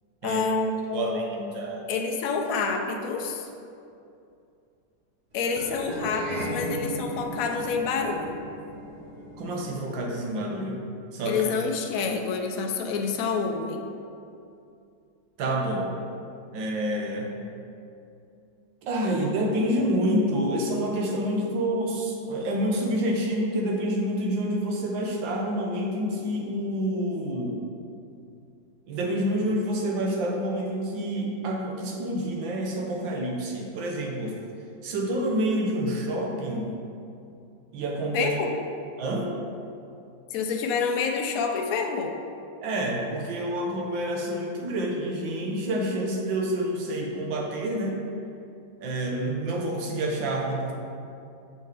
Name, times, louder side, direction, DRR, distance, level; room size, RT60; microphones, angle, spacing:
voice 1, 0.2-1.5 1.9-3.5 5.3-8.4 11.3-13.9 38.1-38.5 40.3-42.1, left 5 dB, 70° left, 3 dB, 0.9 m, -28 dB
voice 2, 0.9-1.9 9.4-10.8 11.1-11.5 11.9-12.0 15.4-15.9 16.5-17.3 18.8-27.6 28.9-34.4 34.8-36.7 37.7-38.3 39.0-39.3 42.6-48.0 48.8-50.7, right 1 dB, 85° right, 0 dB, 1.6 m, -28 dB
sound 1, 5.5-10.1, right 1 dB, 70° right, 0.4 m, -36 dB
6.4 x 5.5 x 3.3 m, 2.5 s
omnidirectional pair, 2.0 m